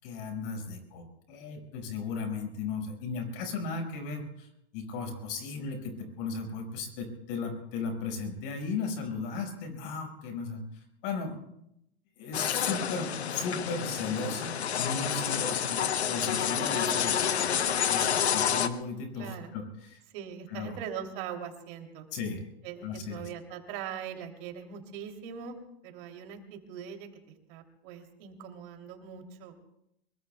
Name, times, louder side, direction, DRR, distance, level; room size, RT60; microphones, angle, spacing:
voice 1, 0.0-11.4 12.2-15.8 16.1-20.0 20.5-20.8 22.1-22.5 22.8-23.3, left 4 dB, 55° left, 4 dB, 5.5 m, -36 dB
sound 1, 12.3-18.7, left 8 dB, 90° left, 1.0 m, -29 dB
voice 2, 19.1-19.5 20.1-22.0 22.6-25.6 25.8-27.1 27.5-29.6, right 8 dB, 55° right, 4 dB, 3.0 m, -41 dB
25.0 x 22.5 x 2.3 m, 0.80 s
hypercardioid pair, 105°, 32 cm